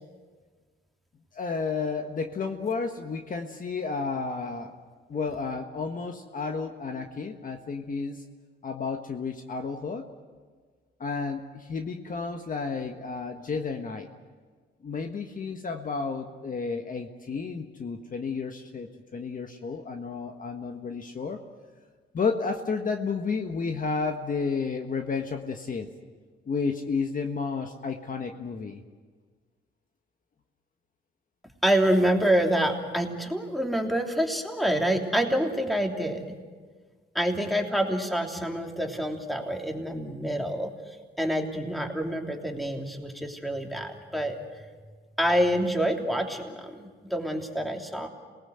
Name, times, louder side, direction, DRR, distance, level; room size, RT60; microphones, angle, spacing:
voice 1, 1.3-4.7 5.1-8.2 8.6-10.1 11.0-14.1 14.8-21.4 22.1-25.9 26.5-28.8, left 4 dB, 40° left, 4 dB, 1.5 m, -32 dB
voice 2, 31.6-36.2 37.1-40.7 41.2-44.4 45.2-48.1, right 1 dB, ahead, 2 dB, 3.2 m, -27 dB
27.5 x 19.0 x 8.0 m, 1.5 s
cardioid pair, 90°, 20 cm